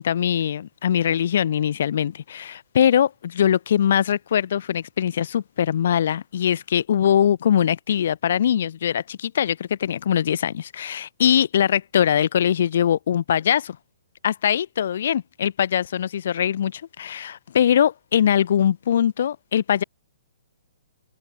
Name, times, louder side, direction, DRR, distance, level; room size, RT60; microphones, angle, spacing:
voice 1, 0.0-13.8 14.2-19.8, left 9 dB, 55° left, 0.4 m, -22 dB
figure-of-eight pair, 120°, 0 cm